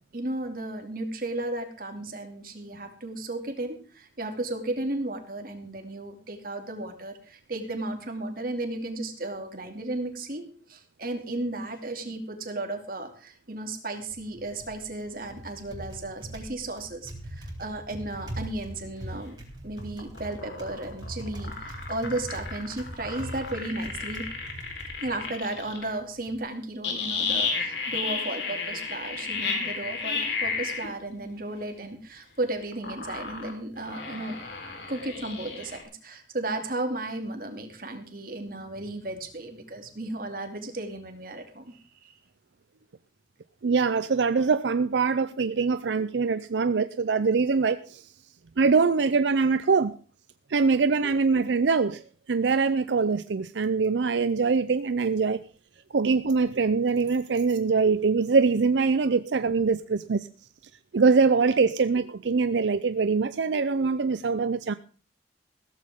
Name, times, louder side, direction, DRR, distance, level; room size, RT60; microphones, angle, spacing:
voice 1, 0.1-19.4 19.6-24.3 25.0-34.4 34.9-42.1, right 2 dB, 55° right, 2.6 m, -34 dB
Typing, 14.0-26.4, right 1 dB, 25° right, 3.5 m, -42 dB
sound 1, 19.8-25.9 26.8-30.9 32.7-35.8, left 4 dB, 85° left, 4.2 m, -32 dB
voice 2, 43.6-48.0 48.6-50.0 50.5-52.0 52.3-55.4 55.9-60.3 60.9-64.7, right 4 dB, 90° right, 0.5 m, -23 dB
15.5 x 14.0 x 3.7 m
head